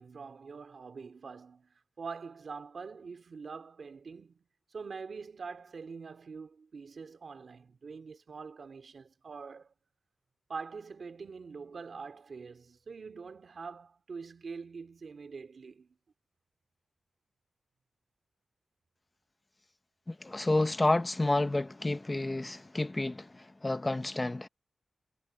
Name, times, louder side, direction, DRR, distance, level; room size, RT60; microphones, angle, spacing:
voice 1, 0.0-4.4 4.7-9.7 10.5-16.0, right 5 dB, 50° right, 2.5 m, -44 dB
voice 2, 20.1-24.5, left 2 dB, 15° left, 0.9 m, -30 dB
wide cardioid pair, 165°, 0 cm